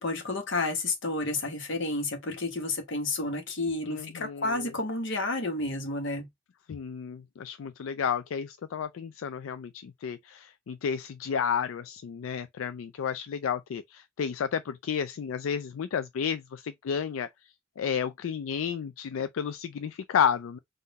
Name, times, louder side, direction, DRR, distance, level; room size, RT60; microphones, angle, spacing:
voice 1, 0.0-6.3, left 2 dB, 65° left, 1.2 m, -31 dB
voice 2, 3.9-4.7 6.7-17.3 17.8-20.6, left 7 dB, 85° left, 0.4 m, -31 dB
3.8 x 2.6 x 4.0 m
head